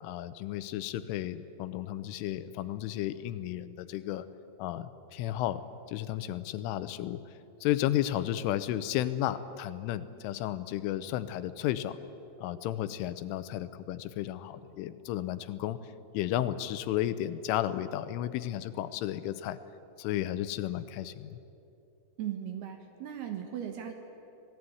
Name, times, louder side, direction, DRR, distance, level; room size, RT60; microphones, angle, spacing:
voice 1, 0.0-4.2 4.6-5.6 5.9-7.2 7.6-12.0 12.4-15.8 16.1-19.6 20.0-21.4, left 12 dB, 90° left, 13 dB, 3.3 m, -33 dB
voice 2, 22.2-23.9, right 10 dB, 65° right, 5 dB, 3.0 m, -37 dB
26.0 x 18.5 x 9.4 m, 2.8 s
omnidirectional pair, 5.7 m